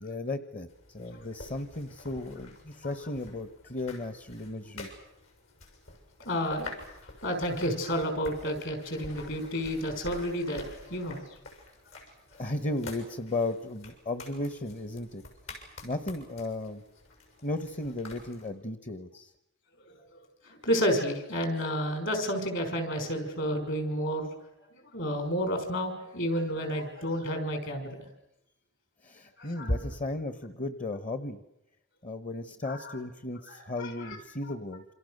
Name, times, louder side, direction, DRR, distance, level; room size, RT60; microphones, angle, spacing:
voice 1, 0.0-4.9 12.4-15.2 15.8-16.8 17.4-19.3 29.0-31.4 32.0-34.8, left 2 dB, 35° left, 12 dB, 1.1 m, -35 dB
sound 1, 0.7-18.5, left 2 dB, 75° left, 7.2 m, -48 dB
voice 2, 6.3-6.7 7.2-11.3 11.9-12.0 19.8-20.2 20.4-24.3 24.7-28.1 29.4-29.8 32.6-32.9 33.5-34.2, equal, 60° left, 6 dB, 5.7 m, -31 dB
28.5 x 26.5 x 6.6 m, 0.85 s
head